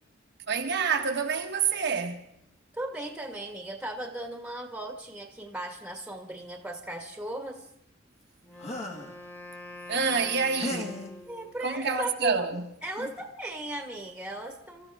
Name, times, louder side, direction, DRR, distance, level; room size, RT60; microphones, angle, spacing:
voice 1, 0.5-2.2 9.9-10.9 11.6-12.6, right 5 dB, 60° right, 1.3 m, -27 dB
voice 2, 2.7-7.6 11.3-12.4 12.8-14.9, right 1 dB, 5° right, 1.5 m, -37 dB
Wind instrument woodwind instrument, 8.4-11.7, left 1 dB, 10° left, 1.4 m, -45 dB
sound 1, 8.6-9.1 10.6-11.1 12.5-12.6 13.0-13.2, left 1 dB, 35° left, 1.8 m, -36 dB
28.0 x 14.0 x 3.5 m
head